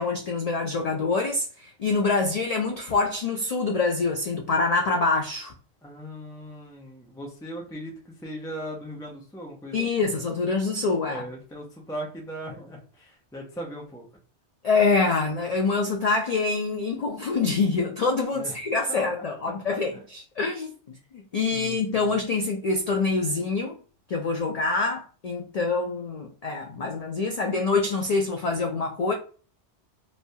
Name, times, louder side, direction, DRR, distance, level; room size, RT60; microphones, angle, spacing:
voice 1, 0.0-5.5 9.7-11.2 14.6-20.7 21.3-23.8 24.1-29.1, left 3 dB, 70° left, 0.3 m, -25 dB
voice 2, 5.8-10.0 11.0-14.1 18.3-18.6 18.9-19.0 19.9-20.0 21.5-22.2, equal, 5° left, 0.4 m, -38 dB
3.2 x 2.2 x 2.6 m
omnidirectional pair, 1.2 m